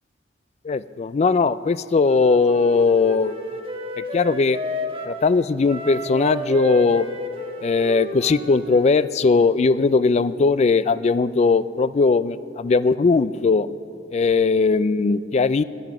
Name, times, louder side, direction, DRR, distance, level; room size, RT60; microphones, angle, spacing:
voice 1, 0.6-3.4 4.0-4.6 5.1-7.1 7.6-13.7 14.1-15.6, left 4 dB, 35° left, 16 dB, 0.3 m, -19 dB
Wind instrument woodwind instrument, 2.0-5.2 5.6-9.0, equal, 30° right, 1.2 m, -32 dB
19.0 x 7.9 x 6.1 m, 2.5 s
head